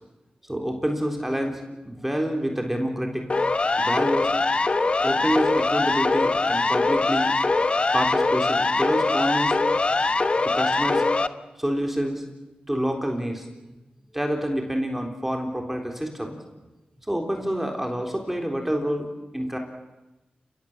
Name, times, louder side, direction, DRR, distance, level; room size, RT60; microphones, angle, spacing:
voice 1, 0.5-1.6 1.9-3.3 3.8-4.3 5.0-7.3 7.9-9.6 10.4-11.0 11.6-12.2 12.7-13.4 14.1-16.4 17.1-19.6, equal, 10° right, 2 dB, 3.8 m, -27 dB
Siren, 3.3-11.3, left 3 dB, 40° left, 1.1 m, -22 dB
29.5 x 18.5 x 7.4 m, 1.0 s
cardioid pair, 70°, 3 cm